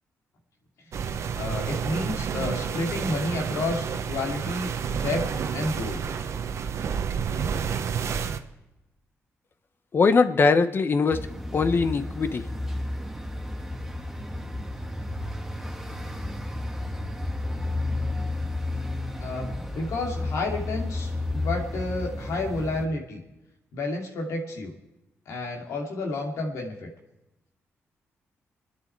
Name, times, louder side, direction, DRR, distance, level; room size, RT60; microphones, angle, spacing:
sound 1, 0.9-8.4, right 7 dB, 70° right, 1.0 m, -30 dB
voice 1, 1.0-6.1 19.2-23.2 23.7-24.7 25.3-26.9, left 2 dB, 90° left, 1 dB, 2.6 m, -31 dB
voice 2, 9.9-11.3 11.5-12.5, left 4 dB, 45° left, 11 dB, 1.1 m, -21 dB
sound 2, 11.1-22.8, left 2 dB, 5° right, 1.5 m, -32 dB
29.0 x 10.0 x 4.6 m, 0.96 s
cardioid pair, 90°, 5 cm